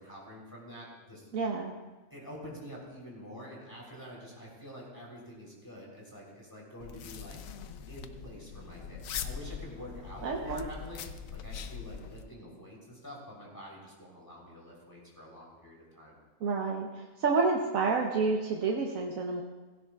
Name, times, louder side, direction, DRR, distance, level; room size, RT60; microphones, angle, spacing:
voice 1, 0.0-1.3 2.1-7.4 7.9-16.2, equal, 15° left, -4 dB, 3.4 m, -47 dB
voice 2, 1.3-1.7 10.2-10.6 16.4-19.4, right 4 dB, 85° right, 0 dB, 1.4 m, -29 dB
sound 1, 6.8-12.2, left 7 dB, 90° left, 1.1 m, -42 dB
16.5 x 16.0 x 2.4 m, 1.2 s
omnidirectional pair, 1.4 m